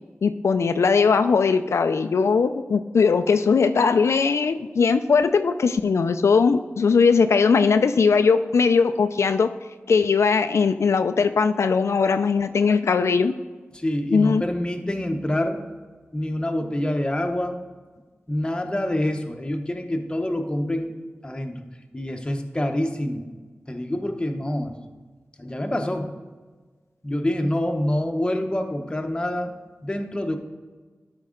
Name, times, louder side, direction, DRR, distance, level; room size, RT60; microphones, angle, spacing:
voice 1, 0.2-9.5 9.9-13.3 14.1-14.4, left 5 dB, 85° left, 9 dB, 0.3 m, -19 dB
voice 2, 13.7-15.6 16.1-17.6 18.3-20.9 21.2-21.6 21.9-23.2 23.7-24.8 25.4-26.1 27.0-29.5 29.8-30.4, left 1 dB, 20° left, 4 dB, 0.9 m, -26 dB
12.0 x 5.4 x 3.8 m, 1.4 s
wide cardioid pair, 80°, 5 cm